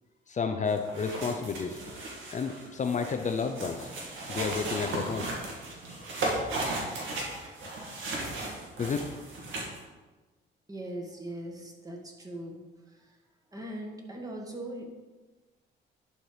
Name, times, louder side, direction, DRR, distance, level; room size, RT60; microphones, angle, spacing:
voice 1, 0.3-1.8 2.3-3.9 4.3-5.3 5.9-6.1 6.5-6.7 8.8-9.0, left 5 dB, 40° left, 5 dB, 0.6 m, -31 dB
sound 1, 0.7-9.8, right 2 dB, 75° right, 2.3 m, -36 dB
voice 2, 10.7-12.6 12.9-13.1 13.5-15.1, right 1 dB, 20° right, 0 dB, 1.8 m, -40 dB
11.0 x 4.5 x 5.0 m, 1.2 s
cardioid pair, 90°, 20 cm